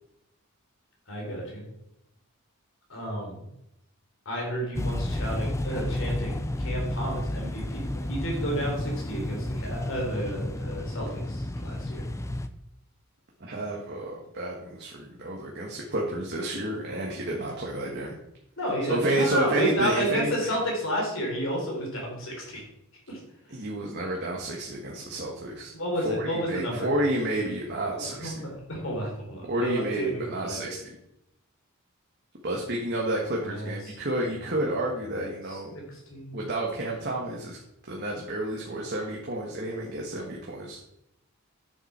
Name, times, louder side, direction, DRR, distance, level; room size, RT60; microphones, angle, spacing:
voice 1, 1.1-1.6 2.9-3.4 4.3-12.1 18.6-22.6 23.1-23.2 25.7-26.9 27.9-30.7 33.4-33.9 34.4-34.6 35.1-35.2 35.5-36.4, equal, 60° left, -1 dB, 3.5 m, -31 dB
sound 1, 4.7-12.5, left 1 dB, 15° left, 0.4 m, -31 dB
voice 2, 13.4-18.1 18.8-20.5 23.5-25.7 26.0-28.4 29.5-30.9 32.4-35.7 36.3-37.6 37.9-40.8, right 1 dB, 50° right, -2 dB, 1.5 m, -30 dB
9.3 x 7.2 x 4.3 m, 0.81 s
head